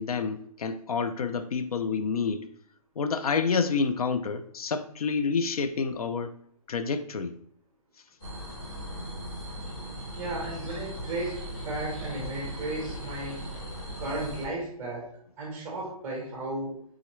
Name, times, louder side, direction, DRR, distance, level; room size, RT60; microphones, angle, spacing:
voice 1, 0.0-2.5 3.0-6.3 6.7-7.3, left 5 dB, 80° left, 0.5 m, -28 dB
sound 1, 8.2-14.4, equal, 20° left, 1.3 m, -38 dB
voice 2, 10.2-13.4 14.0-15.1 15.4-16.8, right 2 dB, 10° right, 0.7 m, -34 dB
4.0 x 3.7 x 3.1 m
hypercardioid pair, 165°, 19 cm